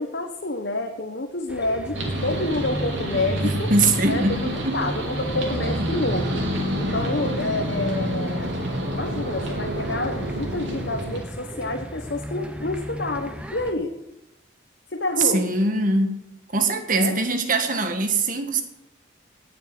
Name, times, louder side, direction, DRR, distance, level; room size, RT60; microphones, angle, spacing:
voice 1, 0.0-3.7 4.0-6.5 6.8-8.5 8.9-13.9 14.9-15.5 16.9-17.2, left 2 dB, 55° left, 2 dB, 1.3 m, -28 dB
sound 1, 1.5-13.7, right 1 dB, 5° right, 1.0 m, -35 dB
Poking bonfire with tractor, 1.9-11.2, equal, 70° right, 3.5 m, -28 dB
voice 2, 3.4-4.8 15.2-16.2 16.5-18.6, right 2 dB, 40° right, 6 dB, 1.7 m, -22 dB
18.0 x 7.5 x 7.7 m, 0.88 s
head